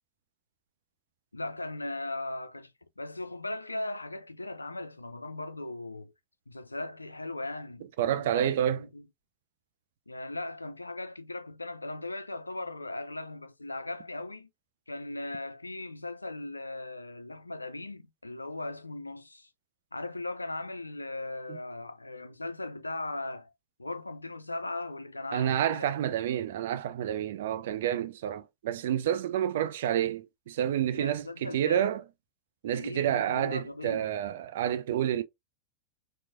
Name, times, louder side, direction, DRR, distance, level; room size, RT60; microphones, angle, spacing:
voice 1, 1.3-6.1 6.5-9.0 10.1-14.5 14.9-19.5 19.9-23.5 23.8-26.0 30.9-31.9 32.7-34.1, left 2 dB, 80° left, 0.3 m, -38 dB
voice 2, 8.0-8.8 21.5-21.6 25.3-32.0 32.6-35.2, right 10 dB, 55° right, 0.4 m, -29 dB
4.4 x 2.0 x 2.4 m
figure-of-eight pair, 90°, 0 cm